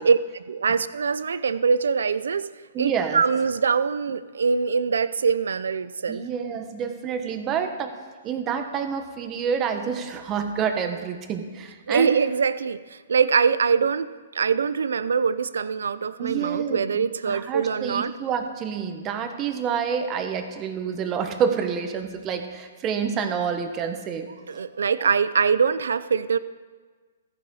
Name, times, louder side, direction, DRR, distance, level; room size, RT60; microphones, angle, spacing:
voice 1, 0.0-2.5 2.8-6.2 11.9-18.1 24.5-26.4, right 5 dB, 80° right, 15 dB, 0.6 m, -23 dB
voice 2, 2.7-3.2 6.1-7.9 8.2-12.1 16.2-16.8 17.2-24.6 25.0-25.1, right 7 dB, 25° right, 6 dB, 1.3 m, -28 dB
14.5 x 10.5 x 4.9 m, 1.4 s
hypercardioid pair, 140°, 0 cm